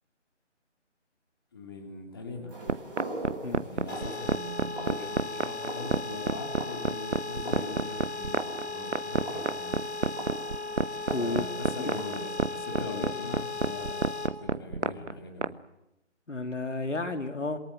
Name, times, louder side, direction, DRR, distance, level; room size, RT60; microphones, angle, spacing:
voice 1, 1.5-2.6 3.6-9.8 11.2-15.6, left 3 dB, 20° left, 3 dB, 2.6 m, -41 dB
sound 1, 2.5-13.7, right 1 dB, 5° right, 7.3 m, -43 dB
sound 2, 2.7-15.5, right 4 dB, 75° right, 1.1 m, -28 dB
sound 3, 3.9-14.3, left 3 dB, 65° left, 3.9 m, -37 dB
voice 2, 11.1-11.5 11.8-11.9 16.3-17.6, left 2 dB, 80° left, 8 dB, 3.2 m, -32 dB
27.5 x 22.5 x 7.9 m, 0.89 s
figure-of-eight pair, 170°, 36 cm